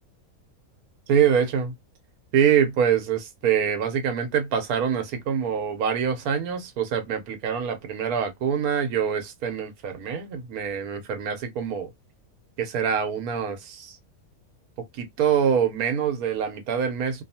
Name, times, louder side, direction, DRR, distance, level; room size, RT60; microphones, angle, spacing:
voice 1, 1.1-1.7 2.3-11.9 12.6-14.0 15.0-17.2, right 8 dB, 80° right, 1.2 m, -25 dB
2.7 x 2.3 x 2.6 m
omnidirectional pair, 1.5 m